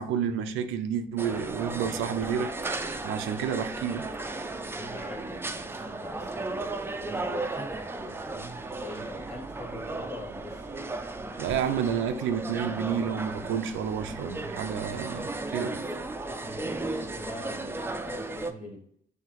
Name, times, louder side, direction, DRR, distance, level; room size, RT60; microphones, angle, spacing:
voice 1, 0.0-2.5 3.0-4.1 11.4-15.8, right 8 dB, 85° right, 0.4 m, -30 dB
sound 1, 1.2-18.5, right 2 dB, 10° right, 0.3 m, -35 dB
voice 2, 4.8-6.6 7.0-7.7 7.9-10.7 16.4-18.8, left 1 dB, 30° left, 1.5 m, -43 dB
5.6 x 2.8 x 2.9 m
cardioid pair, 90°, 20 cm